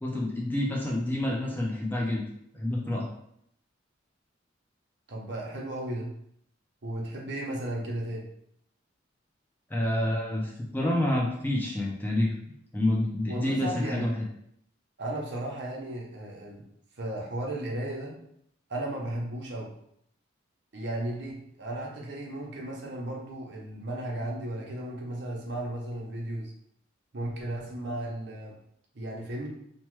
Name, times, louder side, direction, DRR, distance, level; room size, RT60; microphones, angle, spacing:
voice 1, 0.0-2.2 2.5-3.1 9.7-12.3 12.7-14.1, left 1 dB, 10° left, -3 dB, 0.4 m, -28 dB
voice 2, 5.1-6.1 6.8-8.2 13.2-14.1 15.0-16.6 17.0-18.1 18.7-19.7 20.7-26.5 27.1-28.6 28.9-29.5, right 1 dB, 60° right, -2 dB, 0.7 m, -35 dB
3.0 x 2.1 x 3.0 m, 0.72 s
head